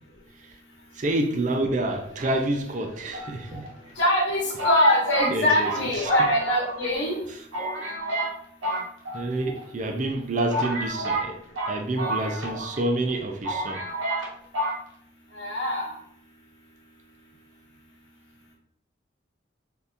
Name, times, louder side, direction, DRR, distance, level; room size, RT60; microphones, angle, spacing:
voice 1, 0.9-3.7 5.3-6.1 7.3-7.4 9.1-13.9, right 1 dB, 40° right, 0.4 m, -28 dB
sound 1, 3.1-3.9 4.6-6.9 7.2-7.3 7.5-8.3 8.6-9.6 10.1-10.2 10.5-12.8 13.1-13.2 13.4-14.3 14.5-14.8, right 1 dB, 85° right, 0.9 m, -30 dB
voice 2, 4.0-7.2 15.3-15.9, left 1 dB, 70° left, 1.1 m, -23 dB
3.5 x 2.8 x 2.5 m
head